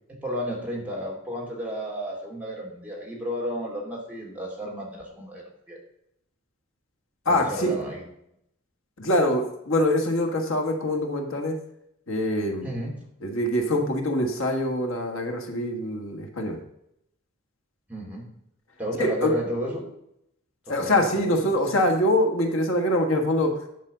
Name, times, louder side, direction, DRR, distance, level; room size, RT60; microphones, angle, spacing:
voice 1, 0.2-5.8 7.3-8.0 12.6-12.9 17.9-18.2 18.8-19.9 20.8-21.1, equal, 5° right, -3 dB, 2.5 m, -32 dB
voice 2, 7.2-7.7 9.0-11.6 12.1-12.7 13.2-16.6 19.0-19.3 20.7-23.6, left 1 dB, 80° left, 3 dB, 1.6 m, -24 dB
10.0 x 5.2 x 6.6 m, 0.77 s
head